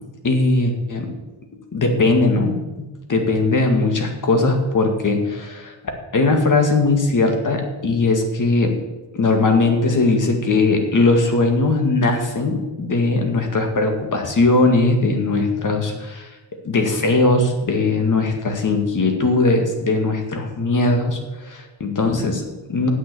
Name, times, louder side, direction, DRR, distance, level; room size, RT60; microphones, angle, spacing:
voice 1, 0.2-1.1 1.7-5.7 6.1-8.8 9.1-16.3 16.6-22.9, left 3 dB, 40° left, 4 dB, 2.1 m, -19 dB
9.7 x 8.0 x 8.4 m, 1.1 s
wide cardioid pair, 130°, 46 cm